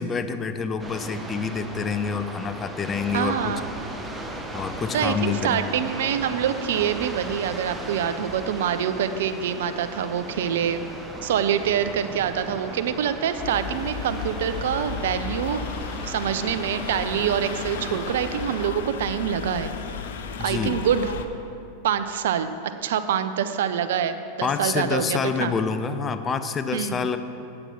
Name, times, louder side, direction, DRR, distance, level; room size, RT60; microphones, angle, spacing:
voice 1, 0.0-3.6 4.5-5.8 20.4-20.8 24.4-27.2, left 5 dB, 25° left, 9 dB, 0.5 m, -27 dB
sound 1, 0.8-18.7, right 1 dB, 10° right, 1.0 m, -37 dB
voice 2, 3.1-3.7 4.9-10.8 11.2-15.6 16.0-19.7 20.4-21.1 21.8-22.6 22.8-25.5 26.7-27.0, right 8 dB, 65° right, 10 dB, 0.5 m, -25 dB
sound 2, 13.4-21.3, left 6 dB, 65° left, 0.6 m, -34 dB
8.5 x 7.9 x 5.7 m, 2.7 s
figure-of-eight pair, 95°, 0 cm